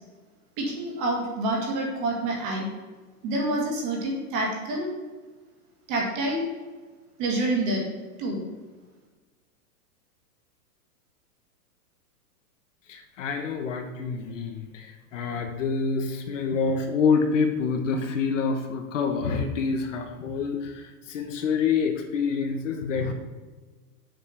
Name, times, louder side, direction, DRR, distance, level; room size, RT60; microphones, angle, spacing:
voice 1, 0.6-2.7 3.2-4.9 5.9-6.5 7.2-7.8 8.2-8.4, right 1 dB, 25° right, -2 dB, 2.2 m, -27 dB
voice 2, 12.9-23.1, left 5 dB, 50° left, 5 dB, 1.2 m, -27 dB
7.8 x 5.4 x 6.8 m, 1.3 s
supercardioid pair, 175°, 47 cm